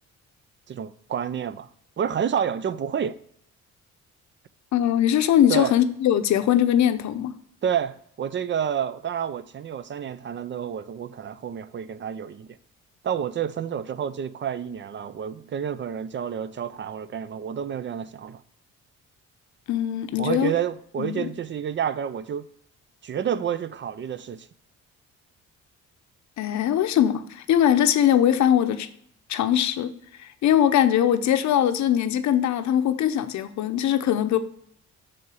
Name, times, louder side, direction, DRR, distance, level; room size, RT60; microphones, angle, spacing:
voice 1, 0.7-1.7 2.0-3.2 5.5-5.8 7.6-12.5 13.0-18.4 20.2-22.5 23.0-24.5, right 8 dB, 40° right, 0.5 m, -29 dB
voice 2, 4.7-7.3 19.7-20.5 21.0-21.3 26.4-28.9 29.3-29.9 30.4-34.4, left 10 dB, 70° left, 0.7 m, -21 dB
6.8 x 3.8 x 6.2 m
cardioid pair, 90°, 30 cm